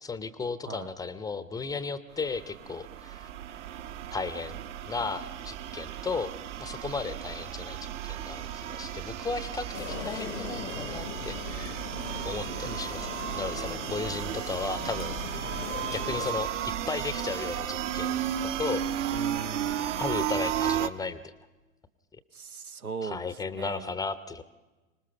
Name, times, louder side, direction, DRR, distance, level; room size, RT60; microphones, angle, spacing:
voice 1, 0.0-3.3 4.1-6.3 6.6-11.8 12.2-15.2 15.9-18.8 20.0-21.3 22.1-22.2 23.0-24.4, left 4 dB, 10° left, 14 dB, 0.6 m, -35 dB
sound 1, 2.2-20.9, right 10 dB, 60° right, 1.1 m, -34 dB
sound 2, 9.7-16.3, left 9 dB, 65° left, 1.0 m, -40 dB
voice 2, 19.1-20.2 22.3-23.3 23.6-23.9, right 5 dB, 85° right, 11 dB, 0.8 m, -39 dB
25.5 x 19.5 x 5.8 m, 1.2 s
figure-of-eight pair, 90°, 42 cm